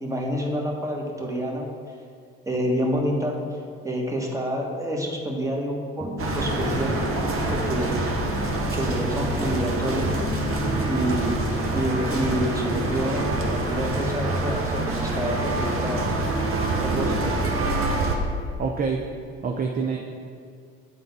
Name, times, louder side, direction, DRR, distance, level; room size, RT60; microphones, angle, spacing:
voice 1, 0.0-1.8 2.4-3.6 3.8-8.0 8.7-10.2 10.9-11.3 11.7-16.1 16.8-17.3, equal, 10° right, -1 dB, 1.4 m, -28 dB
sound 1, 6.0-17.2, equal, 5° left, 1.0 m, -32 dB
sound 2, 6.2-18.2, right 2 dB, 45° right, 1.0 m, -27 dB
voice 2, 18.6-19.0 19.4-20.0, right 5 dB, 30° right, 1 dB, 0.6 m, -26 dB
9.4 x 3.8 x 3.6 m, 2.1 s
hypercardioid pair, 55°, 32 cm